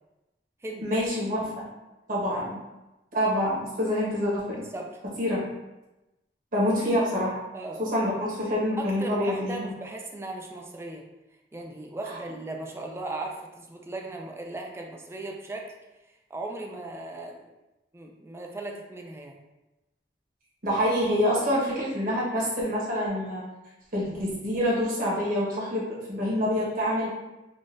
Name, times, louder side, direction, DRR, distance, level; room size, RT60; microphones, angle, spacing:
voice 1, 0.8-1.7 2.1-2.6 3.1-4.6 5.2-5.4 6.5-7.4 7.8-9.7 20.6-23.4 23.9-27.1, equal, 55° right, -6 dB, 1.2 m, -26 dB
voice 2, 4.5-5.0 7.5-7.8 8.5-11.1 11.5-15.7 16.0-17.5 17.9-19.4, right 2 dB, 15° right, 1 dB, 0.4 m, -37 dB
3.7 x 2.4 x 2.5 m, 1.0 s
head